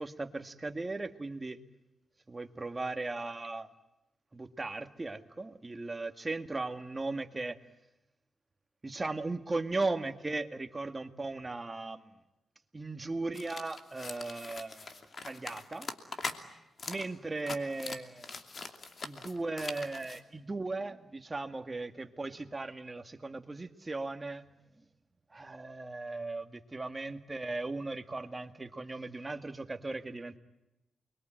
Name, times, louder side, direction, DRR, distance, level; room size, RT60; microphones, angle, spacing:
voice 1, 0.0-1.6 2.3-3.7 4.3-7.6 8.8-12.1 12.7-15.9 16.9-18.3 19.0-24.5 25.3-30.4, right 3 dB, 25° right, 7 dB, 2.0 m, -37 dB
sound 1, 13.3-16.4 16.8-17.1 17.3-20.2, left 4 dB, 50° left, 2.8 m, -42 dB
29.0 x 22.5 x 9.1 m, 0.90 s
cardioid pair, 75°, 0 cm